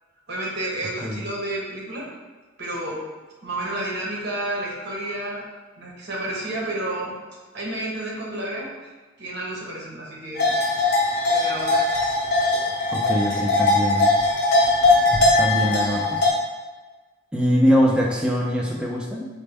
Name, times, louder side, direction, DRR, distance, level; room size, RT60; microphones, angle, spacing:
voice 1, 0.3-2.1 2.6-3.1 3.4-5.4 5.8-7.1 7.5-8.7 9.2-10.4 11.3-11.8, right 1 dB, 55° right, -3 dB, 0.9 m, -30 dB
sound 1, 10.4-16.3, left 2 dB, 55° left, 0.8 m, -20 dB
voice 2, 12.9-14.2 15.4-16.2 17.3-19.3, equal, 5° right, -2 dB, 0.4 m, -22 dB
4.2 x 2.0 x 3.4 m, 1.3 s
head